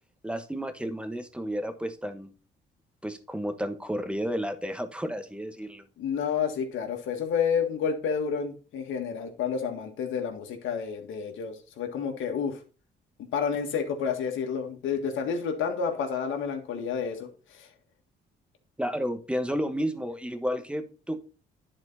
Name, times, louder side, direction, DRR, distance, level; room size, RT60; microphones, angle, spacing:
voice 1, 0.2-2.3 3.0-5.8 18.8-21.2, equal, 5° right, 8 dB, 1.2 m, -32 dB
voice 2, 6.0-12.6 13.3-17.7, left 6 dB, 80° left, 4 dB, 1.8 m, -30 dB
10.5 x 4.5 x 4.2 m, 0.36 s
cardioid pair, 90°, 20 cm